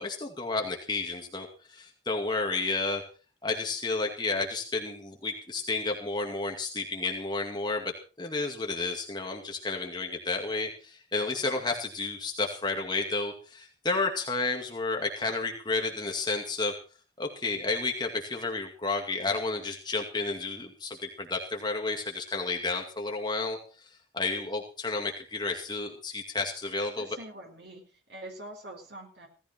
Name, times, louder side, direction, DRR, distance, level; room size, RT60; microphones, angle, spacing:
voice 1, 0.0-3.0 3.4-16.7 17.2-27.1, left 3 dB, 20° left, 2 dB, 2.1 m, -31 dB
voice 2, 10.4-10.7 11.4-11.6 27.0-27.8 28.1-29.3, right 1 dB, 60° right, 3 dB, 4.3 m, -45 dB
17.0 x 14.0 x 4.4 m, 0.37 s
head